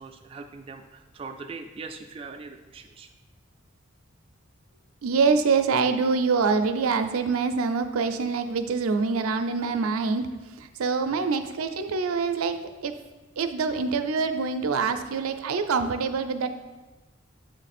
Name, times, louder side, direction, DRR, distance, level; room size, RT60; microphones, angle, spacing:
voice 1, 0.0-3.1 11.1-11.3, right 4 dB, 25° right, 3 dB, 0.3 m, -41 dB
voice 2, 5.0-10.3 10.8-12.5 12.8-12.9 13.4-16.5, right 4 dB, 90° right, 8 dB, 0.5 m, -25 dB
7.7 x 3.2 x 4.2 m, 1.2 s
head